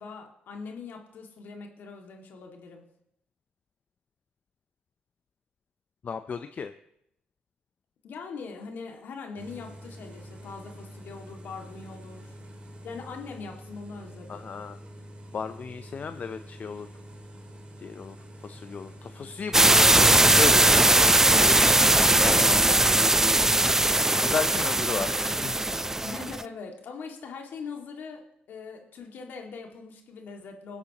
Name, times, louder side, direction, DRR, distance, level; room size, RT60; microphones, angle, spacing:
voice 1, 0.0-2.8 8.0-12.4 12.8-14.4 24.3-24.6 26.0-30.8, left 5 dB, 65° left, 3 dB, 2.1 m, -41 dB
voice 2, 6.0-6.7 14.3-14.8 15.3-16.9 17.8-18.2 18.4-22.6 23.8-25.9, left 6 dB, 50° left, 9 dB, 0.6 m, -35 dB
sound 1, 9.4-25.5, right 1 dB, 35° right, 2.4 m, -45 dB
sound 2, 19.5-26.4, right 1 dB, 15° right, 0.5 m, -20 dB
21.5 x 8.1 x 3.0 m, 0.76 s
supercardioid pair, 55°, 3 cm